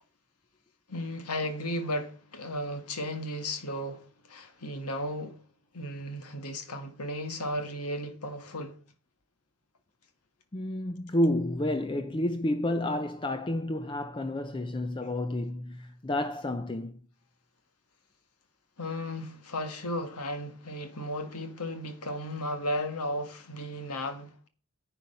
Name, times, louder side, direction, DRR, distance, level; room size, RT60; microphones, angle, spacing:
voice 1, 0.9-5.4 5.7-8.8 18.8-24.5, left 1 dB, 90° left, 1.7 m, -35 dB
voice 2, 10.5-17.0, left 1 dB, 20° left, 0.5 m, -30 dB
10.0 x 8.7 x 5.5 m
head